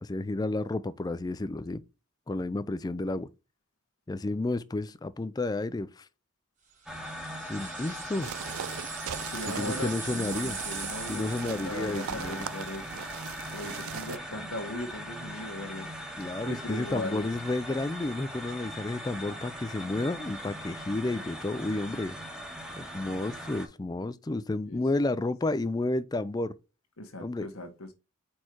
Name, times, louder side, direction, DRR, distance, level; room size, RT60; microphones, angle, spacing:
voice 1, 0.0-1.8 2.3-3.3 4.1-6.1 7.5-8.3 9.6-10.6 11.1-12.5 16.2-22.2 22.8-26.5 27.2-27.5, left 2 dB, 20° left, 0.3 m, -31 dB
sound 1, 6.9-23.7, equal, 5° right, 0.9 m, -40 dB
sound 2, 6.9-11.7, right 6 dB, 35° right, 1.6 m, -41 dB
sound 3, 8.2-14.2, right 8 dB, 80° right, 0.4 m, -40 dB
voice 2, 9.0-13.0 13.5-15.9 16.2-17.3 24.7-24.8 25.1-25.3 27.0-27.9, left 1 dB, 80° left, 1.1 m, -39 dB
4.8 x 4.4 x 4.4 m
head